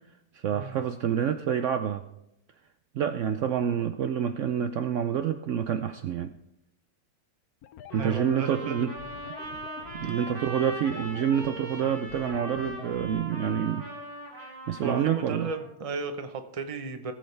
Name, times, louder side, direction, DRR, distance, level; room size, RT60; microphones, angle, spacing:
voice 1, 0.3-2.0 2.9-6.3 7.9-8.9 9.9-13.9 14.4-15.5, right 8 dB, 85° right, 8 dB, 0.6 m, -28 dB
sound 1, 7.6-13.6, left 10 dB, 70° left, 0.9 m, -47 dB
voice 2, 7.9-8.9 10.0-10.2 14.8-17.1, right 4 dB, 35° right, 7 dB, 0.6 m, -35 dB
Trumpet, 7.9-15.7, right 1 dB, 55° right, 3.6 m, -40 dB
18.5 x 7.8 x 3.3 m, 0.85 s
omnidirectional pair, 1.9 m